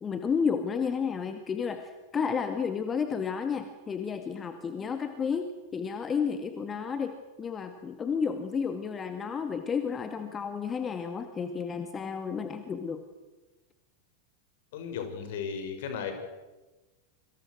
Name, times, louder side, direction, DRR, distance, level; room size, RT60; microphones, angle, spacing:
voice 1, 0.0-13.1, left 6 dB, 20° left, 7 dB, 2.0 m, -32 dB
voice 2, 14.7-16.1, left 7 dB, 55° left, 7 dB, 5.4 m, -35 dB
27.0 x 25.5 x 6.5 m, 1.1 s
figure-of-eight pair, 90°, 0 cm